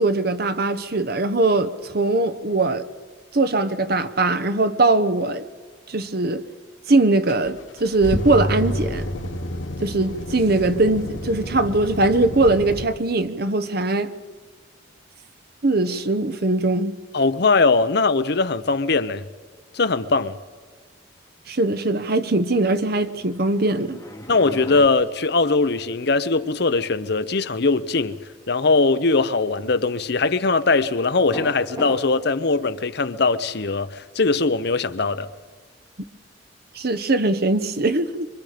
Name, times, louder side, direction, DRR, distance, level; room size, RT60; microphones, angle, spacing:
voice 1, 0.0-2.9 3.3-5.4 5.9-6.4 6.9-9.0 9.8-14.1 15.6-17.0 21.5-24.0 36.7-38.3, right 2 dB, 55° right, 1.1 m, -21 dB
sound 1, 7.3-12.8, equal, 85° left, 1.6 m, -29 dB
voice 2, 17.1-19.2 19.7-20.4 24.3-28.2 28.5-35.3, left 3 dB, 60° left, 0.8 m, -20 dB
sound 2, 22.9-24.9, left 1 dB, 15° left, 2.1 m, -39 dB
sound 3, 31.3-32.0, left 1 dB, 20° right, 5.5 m, -30 dB
26.0 x 24.0 x 5.1 m
head